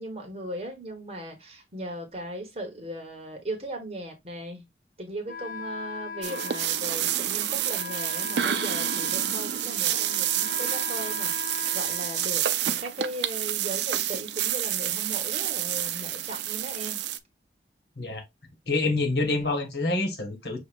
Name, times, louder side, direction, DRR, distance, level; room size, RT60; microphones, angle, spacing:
voice 1, 0.0-4.6 5.0-17.0, right 1 dB, 35° right, 1.3 m, -38 dB
Wind instrument woodwind instrument, 5.3-13.0, left 4 dB, 50° left, 0.4 m, -39 dB
sound 1, 6.2-17.2, right 11 dB, 80° right, 0.4 m, -28 dB
voice 2, 18.7-20.6, left 2 dB, 70° left, 1.4 m, -27 dB
6.4 x 2.7 x 2.5 m
head